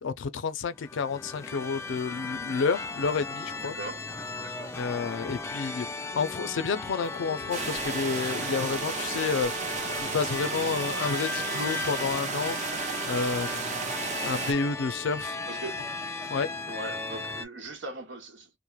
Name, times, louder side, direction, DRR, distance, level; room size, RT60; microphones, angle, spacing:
voice 1, 0.0-3.7 4.8-12.6 13.1-13.9 14.2-15.4 16.3-16.5, left 5 dB, 90° left, 0.4 m, -30 dB
sound 1, 0.7-17.5, left 3 dB, 15° left, 0.3 m, -36 dB
voice 2, 3.6-4.1 4.4-4.8 15.1-15.9 16.7-18.5, right 2 dB, 80° right, 0.9 m, -41 dB
sound 2, 7.5-14.5, right 5 dB, 40° right, 0.5 m, -33 dB
3.0 x 2.0 x 2.3 m
head